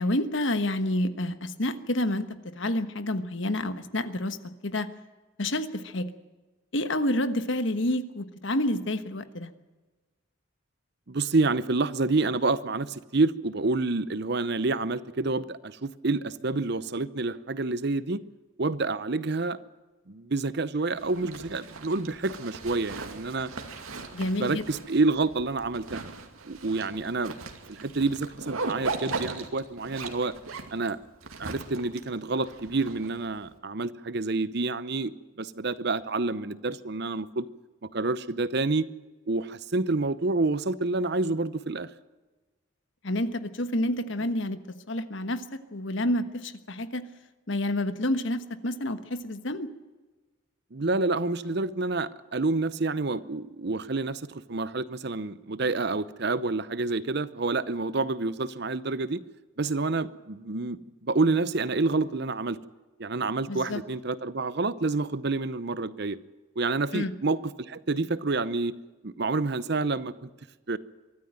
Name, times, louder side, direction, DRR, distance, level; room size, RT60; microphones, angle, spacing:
voice 1, 0.0-2.3 2.6-4.4 4.6-4.9 5.4-6.1 6.7-9.5 24.1-24.6 43.0-44.6 44.9-45.4 45.7-47.0 47.5-49.7 63.5-63.8 66.9-67.1, left 1 dB, 60° left, 11 dB, 1.3 m, -28 dB
voice 2, 11.1-18.2 18.6-19.6 20.1-23.5 24.4-26.1 26.4-27.3 27.7-30.3 30.7-31.0 31.4-35.1 35.4-37.5 37.9-38.9 39.3-41.9 50.7-59.2 59.6-62.6 63.0-66.2 66.6-68.7 69.0-70.3 70.7-70.8, right 3 dB, 50° right, 16 dB, 0.8 m, -28 dB
Zipper (clothing), 21.0-33.5, right 3 dB, 90° right, 2.5 m, -38 dB
24.0 x 13.5 x 9.1 m, 1.2 s
head